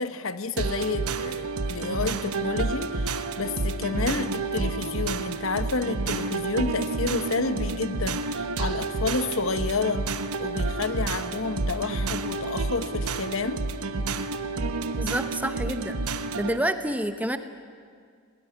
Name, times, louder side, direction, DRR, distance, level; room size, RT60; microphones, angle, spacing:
voice 1, 0.0-10.1 10.4-13.7, left 4 dB, 60° left, 0.9 m, -30 dB
sound 1, 0.6-16.6, right 3 dB, 80° right, 1.0 m, -29 dB
voice 2, 15.0-16.0 16.3-17.4, right 1 dB, 5° right, 0.8 m, -28 dB
20.0 x 19.5 x 10.0 m
head